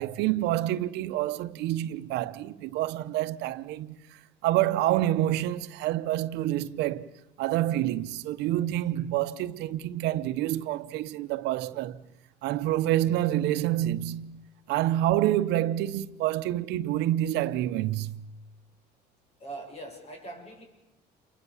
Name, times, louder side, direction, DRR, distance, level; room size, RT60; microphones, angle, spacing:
voice 1, 0.0-4.0 4.4-7.1 7.4-12.0 12.4-18.3, right 13 dB, 90° right, 0.9 m, -27 dB
voice 2, 19.4-20.6, right 2 dB, 40° left, 7.7 m, -41 dB
29.0 x 24.0 x 7.2 m
cardioid pair, 110°, 17 cm